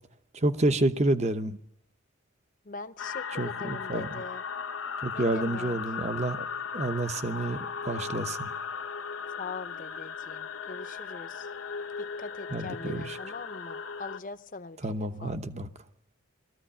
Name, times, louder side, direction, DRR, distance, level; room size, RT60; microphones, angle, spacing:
voice 1, 0.3-1.6 3.3-4.2 5.0-6.4 6.7-8.5 12.5-13.2 14.8-15.7, right 2 dB, 30° right, 0.9 m, -29 dB
voice 2, 2.7-4.4 5.1-5.8 9.4-11.5 12.0-15.3, left 3 dB, 40° left, 0.8 m, -42 dB
sound 1, 3.0-14.2, left 6 dB, 70° left, 0.9 m, -37 dB
20.5 x 14.5 x 10.0 m
head